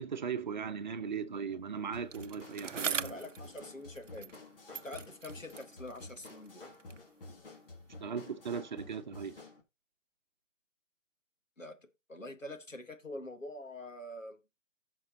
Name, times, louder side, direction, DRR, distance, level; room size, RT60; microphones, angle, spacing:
voice 1, 0.0-3.3 8.0-9.4, right 6 dB, 40° right, 1.0 m, -38 dB
sound 1, 1.9-9.6, left 2 dB, 45° left, 2.8 m, -51 dB
Bicycle, 2.1-4.5 4.7-7.1 7.9-8.0, right 6 dB, 75° right, 0.7 m, -42 dB
voice 2, 2.9-4.4 4.8-6.7 11.6-14.4, left 1 dB, 90° left, 1.8 m, -45 dB
14.5 x 6.4 x 2.9 m
figure-of-eight pair, 145°, 38 cm